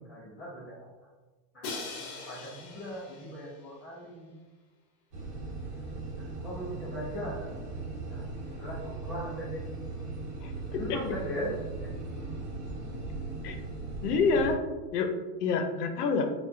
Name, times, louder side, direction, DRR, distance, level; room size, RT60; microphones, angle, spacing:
voice 1, 0.1-0.9 1.5-1.7 2.0-4.3 6.2-9.6 10.6-11.9, equal, ahead, -14 dB, 0.4 m, -40 dB
Crash cymbal, 1.6-3.6, left 3 dB, 45° left, 0.8 m, -41 dB
sound 1, 5.1-14.5, right 3 dB, 45° right, 1.1 m, -38 dB
voice 2, 10.4-11.0 13.4-13.6 14.0-14.6 14.9-15.1 15.4-16.3, left 4 dB, 75° left, 6 dB, 0.7 m, -27 dB
4.6 x 2.4 x 2.6 m, 1.2 s
supercardioid pair, 175°, 47 cm